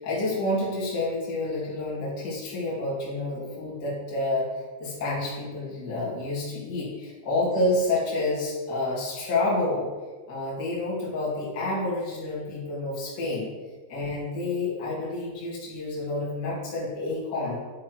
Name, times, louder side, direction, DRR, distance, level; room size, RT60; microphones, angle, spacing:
voice 1, 0.0-9.9 10.3-13.5 13.9-17.6, left 2 dB, 35° left, -6 dB, 1.8 m, -29 dB
9.8 x 3.7 x 4.6 m, 1.3 s
omnidirectional pair, 5.2 m